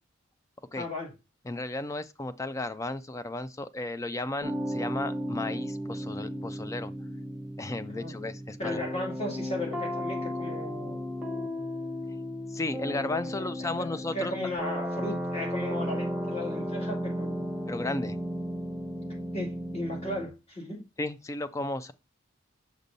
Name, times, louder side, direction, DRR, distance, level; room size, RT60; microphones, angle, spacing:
voice 1, 0.8-1.1 7.9-8.1 8.6-11.0 13.2-17.5 19.3-20.8, left 1 dB, 30° left, 2.3 m, -36 dB
voice 2, 1.5-6.9 7.6-8.8 11.2-11.3 12.5-14.3 14.7-15.0 17.7-18.2 21.0-21.9, left 2 dB, 15° left, 0.3 m, -34 dB
sound 1, 4.4-20.3, equal, 5° right, 0.9 m, -34 dB
6.6 x 6.2 x 2.7 m
head